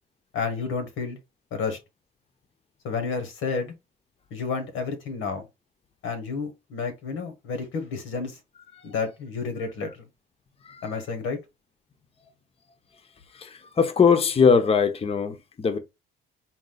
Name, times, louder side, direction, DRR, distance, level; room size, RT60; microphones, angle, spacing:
voice 1, 0.3-1.2 1.5-1.8 2.8-3.7 4.3-5.4 6.0-8.4 8.8-9.9 10.8-11.4, left 5 dB, 90° left, 1.3 m, -30 dB
voice 2, 10.6-11.0 13.3-15.8, left 6 dB, 30° left, 0.6 m, -22 dB
4.1 x 2.3 x 3.9 m
cardioid pair, 90°, 20 cm